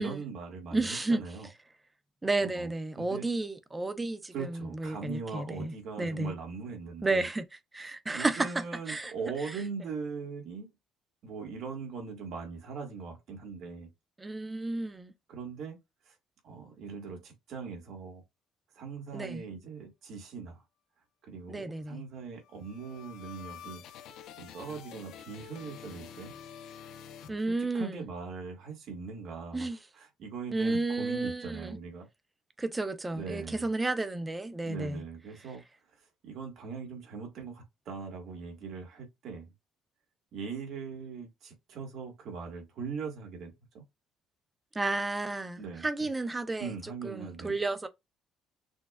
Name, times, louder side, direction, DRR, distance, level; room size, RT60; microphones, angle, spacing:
voice 1, 0.0-1.5 2.4-2.7 3.0-3.3 4.3-7.3 8.1-10.7 11.2-13.9 15.3-15.8 16.1-16.2 16.4-18.2 18.7-20.6 21.2-23.8 24.4-26.3 27.5-29.7 30.0-32.1 33.1-33.7 34.6-35.6 36.0-39.5 40.3-43.8 45.6-46.1 46.6-47.6, right 5 dB, 55° right, 1.7 m, -40 dB
voice 2, 0.7-1.2 2.2-6.3 7.0-7.4 7.7-9.1 9.4-9.6 14.2-15.1 19.1-19.4 21.5-22.0 27.3-28.0 29.5-29.8 30.5-31.8 32.6-35.0 44.7-46.7 47.0-47.9, right 2 dB, 10° right, 0.6 m, -32 dB
sound 1, 22.4-28.0, left 8 dB, 70° left, 0.7 m, -48 dB
6.2 x 2.3 x 2.3 m
cardioid pair, 145°, 0 cm